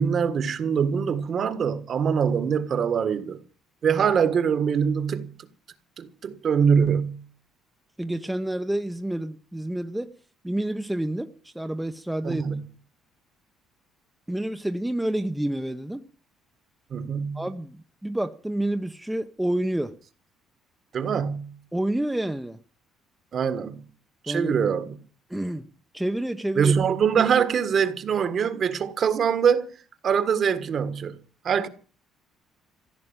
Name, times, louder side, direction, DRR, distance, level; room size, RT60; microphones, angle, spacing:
voice 1, 0.0-3.4 3.8-5.3 6.0-7.2 12.2-12.6 16.9-17.4 20.9-21.6 23.3-23.8 24.2-25.0 26.6-29.7 30.0-31.2 31.4-31.7, right 7 dB, 45° right, 1.6 m, -23 dB
voice 2, 8.0-10.1 10.4-12.4 14.3-16.0 17.3-19.9 21.7-22.6 24.3-24.5 25.3-25.7 25.9-26.7, right 1 dB, 5° right, 0.8 m, -28 dB
15.5 x 8.3 x 9.0 m
cardioid pair, 130°, 0 cm